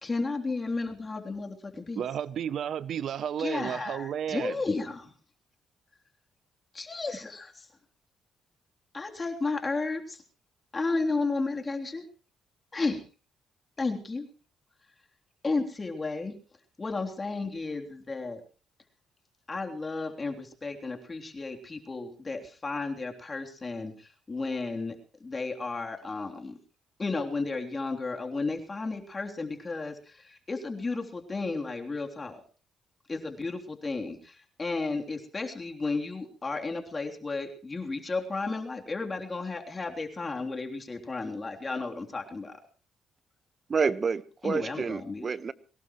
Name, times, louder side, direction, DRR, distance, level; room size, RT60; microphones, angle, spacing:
voice 1, 0.0-2.0 3.4-5.1 6.7-7.7 8.9-10.2 10.7-12.0 12.7-13.0 13.8-14.3 15.4-16.3 16.8-18.4 19.5-26.6 27.0-32.4 33.1-42.6 44.4-45.3, left 3 dB, 30° left, 3.4 m, -33 dB
voice 2, 2.0-4.6, right 9 dB, 65° right, 0.7 m, -32 dB
voice 3, 43.7-45.5, right 5 dB, 40° right, 1.2 m, -29 dB
23.5 x 18.5 x 3.2 m
cardioid pair, 90°, 0 cm